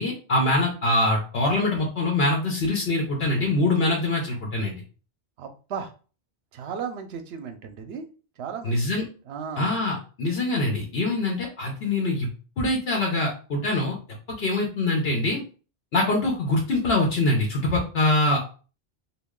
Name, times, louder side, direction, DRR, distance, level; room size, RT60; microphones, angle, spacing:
voice 1, 0.0-4.7 8.6-9.0 9.6-12.3 12.6-14.0 14.4-15.4 15.9-18.4, left 2 dB, 75° left, -1 dB, 1.0 m, -24 dB
voice 2, 5.4-5.9 6.5-8.0 8.4-8.8 9.3-9.7, right 6 dB, 80° right, 7 dB, 0.8 m, -35 dB
3.0 x 2.4 x 3.6 m, 0.37 s
omnidirectional pair, 1.1 m